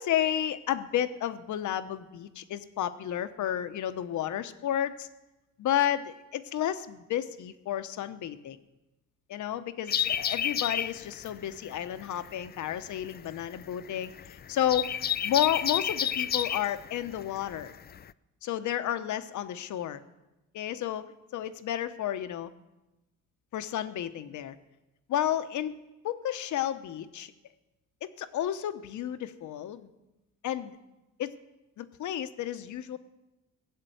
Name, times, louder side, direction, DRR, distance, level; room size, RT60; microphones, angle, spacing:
voice 1, 0.0-5.1 5.6-8.6 9.3-14.9 15.2-17.7 18.4-20.0 20.5-22.5 23.5-24.5 25.1-25.8 26.0-27.3 28.0-29.9 30.4-30.7 31.2-31.3 31.8-33.0, left 11 dB, 75° left, 11 dB, 1.1 m, -31 dB
sound 1, 9.9-18.1, left 9 dB, 35° left, 0.4 m, -31 dB
17.0 x 7.6 x 9.3 m, 1.0 s
cardioid pair, 90°, 30 cm